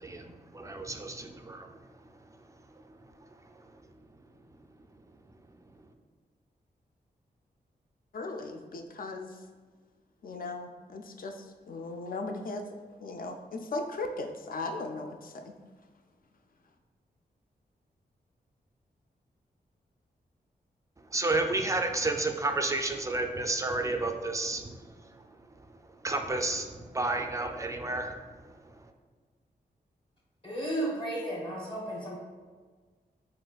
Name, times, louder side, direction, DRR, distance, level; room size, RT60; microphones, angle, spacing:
voice 1, 0.0-1.7 21.1-24.8 25.6-25.7 26.0-28.2, right 2 dB, 20° right, 5 dB, 0.3 m, -31 dB
voice 2, 8.1-9.3 10.2-12.7 13.0-15.5, left 2 dB, 55° left, 5 dB, 0.4 m, -37 dB
voice 3, 30.4-32.1, right 1 dB, 30° left, -3 dB, 1.2 m, -33 dB
4.0 x 2.5 x 2.3 m, 1.4 s
cardioid pair, 55°, 17 cm